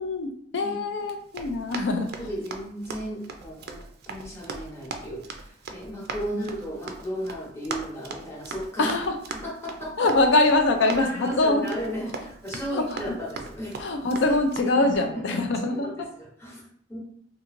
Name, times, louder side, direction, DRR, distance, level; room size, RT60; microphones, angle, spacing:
voice 1, 0.0-2.3 6.2-6.5 8.8-9.2 10.0-11.6 12.7-13.2 13.8-15.9, left 2 dB, 75° left, 5 dB, 0.4 m, -24 dB
Run, 1.0-14.6, right 4 dB, 60° right, 0.4 m, -40 dB
voice 2, 2.2-9.0 9.3-10.1 10.8-13.8 14.3-14.4 14.8-15.4 15.7-17.0, equal, 15° left, -4 dB, 0.9 m, -35 dB
2.8 x 2.6 x 2.5 m, 0.64 s
head